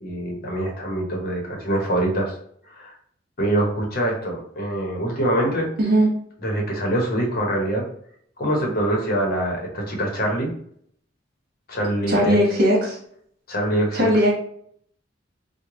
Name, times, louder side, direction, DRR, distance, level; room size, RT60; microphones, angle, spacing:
voice 1, 0.0-2.4 2.7-2.9 3.4-5.7 6.4-7.8 8.4-10.5 11.7-12.4 13.5-14.1, right 1 dB, 50° left, 0 dB, 0.8 m, -24 dB
voice 2, 12.1-13.0 13.9-14.3, equal, 55° right, -3 dB, 1.2 m, -18 dB
3.1 x 2.1 x 3.7 m, 0.64 s
head